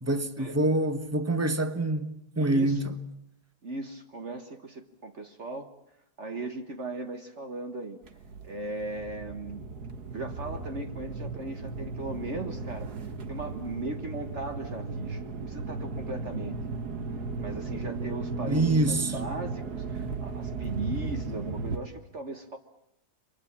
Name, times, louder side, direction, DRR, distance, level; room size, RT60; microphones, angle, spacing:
voice 1, 0.0-2.9 18.4-19.1, right 2 dB, 10° right, 1.2 m, -26 dB
voice 2, 2.4-2.9 3.6-5.7 6.2-8.0 8.4-16.6 17.4-22.6, right 2 dB, 45° right, 1.7 m, -38 dB
sound 1, 8.0-21.8, right 4 dB, 75° right, 2.1 m, -36 dB
29.0 x 24.5 x 7.4 m
omnidirectional pair, 1.7 m